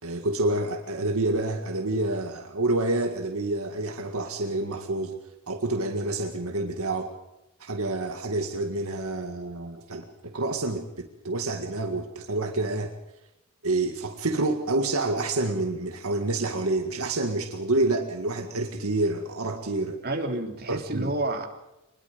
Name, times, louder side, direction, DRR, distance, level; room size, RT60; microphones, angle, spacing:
voice 1, 0.0-5.1 5.5-7.1 7.6-12.9 13.6-20.0 20.7-21.1, right 2 dB, 75° right, 4 dB, 2.1 m, -28 dB
voice 2, 20.0-21.5, right 2 dB, 45° right, 2 dB, 3.4 m, -29 dB
25.0 x 21.0 x 5.2 m, 0.93 s
head